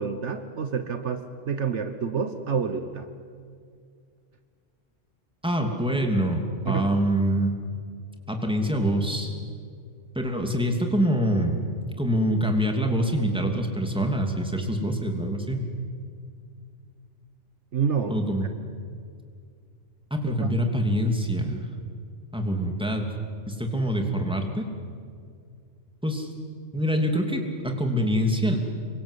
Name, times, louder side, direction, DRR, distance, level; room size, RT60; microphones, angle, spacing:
voice 1, 0.0-3.1 6.6-6.9 17.7-18.2 20.4-20.5, right 6 dB, 65° right, 9 dB, 1.4 m, -28 dB
voice 2, 5.4-7.5 8.3-9.3 10.1-15.7 18.1-18.5 20.1-21.7 22.3-23.1 23.5-24.6 26.0-26.3 26.7-28.6, equal, 5° right, 3 dB, 2.8 m, -25 dB
27.5 x 23.5 x 8.3 m, 2.2 s
omnidirectional pair, 1.3 m